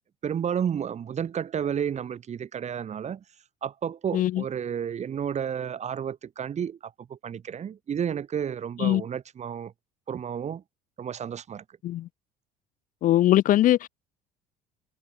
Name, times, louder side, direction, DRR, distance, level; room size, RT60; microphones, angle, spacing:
voice 1, 0.2-3.2 3.6-9.7 10.1-10.6 11.0-11.6, right 8 dB, 40° right, 2.4 m, -31 dB
voice 2, 4.1-4.4 8.8-9.0 11.8-12.1 13.0-13.9, left 13 dB, 50° left, 0.5 m, -21 dB
supercardioid pair, 90°, 17 cm